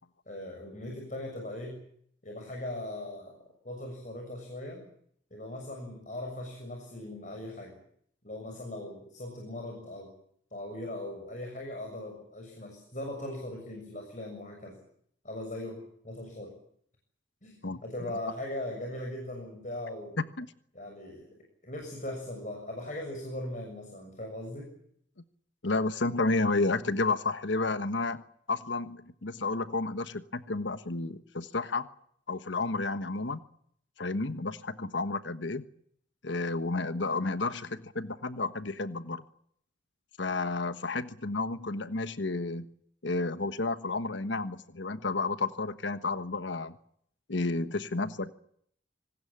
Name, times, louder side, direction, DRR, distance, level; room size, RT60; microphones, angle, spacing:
voice 1, 0.3-1.8 2.2-3.4 3.6-4.9 5.3-7.8 8.2-10.1 10.5-14.8 15.2-16.5 17.4-20.2 20.7-24.7, left 1 dB, 40° left, 2 dB, 6.8 m, -39 dB
voice 2, 25.6-28.2 28.5-31.9 32.3-33.4 34.0-35.6 36.2-39.2 40.2-42.7 43.0-46.7 47.3-48.3, left 3 dB, 75° left, 12 dB, 1.3 m, -31 dB
26.0 x 19.5 x 8.7 m, 0.68 s
head